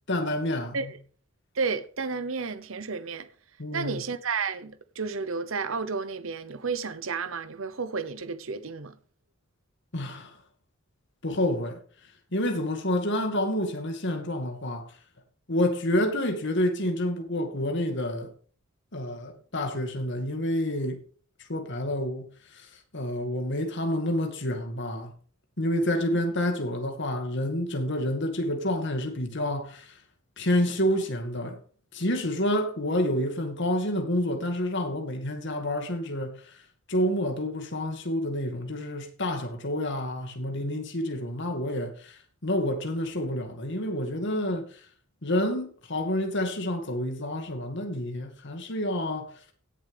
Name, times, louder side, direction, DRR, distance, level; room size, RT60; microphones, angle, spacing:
voice 1, 0.1-0.9 3.6-4.0 9.9-10.4 11.2-11.8 12.3-14.9 15.5-18.3 18.9-21.0 21.5-22.7 22.9-25.1 25.6-29.9 30.4-31.6 31.9-36.4 36.9-44.7 45.2-49.3, left 1 dB, 60° left, 2.2 m, -28 dB
voice 2, 1.5-3.3 3.7-9.0, right 4 dB, 70° right, 0.9 m, -32 dB
17.0 x 7.1 x 3.5 m
head